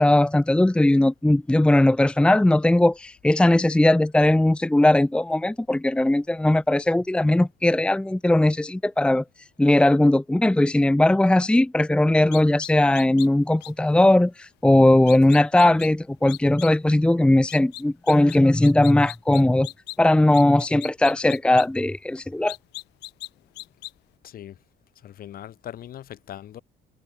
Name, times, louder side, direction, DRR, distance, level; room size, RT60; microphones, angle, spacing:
voice 1, 0.0-9.2 9.6-19.7 20.0-22.5, left 1 dB, 5° left, 0.8 m, -19 dB
sound 1, 12.3-13.3 13.6-13.7 15.1-15.9 16.3-16.7 17.5-18.4 18.6-20.0 20.3-21.7 22.5-23.3 23.6-23.9, left 19 dB, 85° left, 2.8 m, -38 dB
voice 2, 25.0-26.6, left 11 dB, 60° left, 4.4 m, -40 dB
cardioid pair, 110°, 17 cm